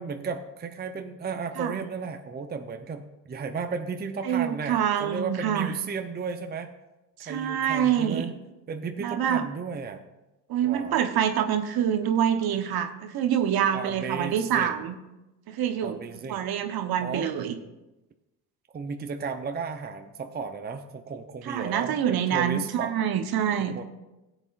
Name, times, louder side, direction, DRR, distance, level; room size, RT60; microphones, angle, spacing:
voice 1, 0.0-6.7 7.2-8.4 8.7-10.0 10.6-11.0 13.7-14.8 15.8-16.5 17.0-17.3 18.7-22.9 23.6-23.8, right 5 dB, 20° right, 6 dB, 0.8 m, -34 dB
voice 2, 4.2-5.7 7.2-8.3 9.0-9.4 10.5-15.0 15.5-16.0 16.3-17.5 21.4-23.8, right 9 dB, 50° right, 7 dB, 1.1 m, -26 dB
17.0 x 8.1 x 2.5 m, 1.0 s
hypercardioid pair, 65°, 47 cm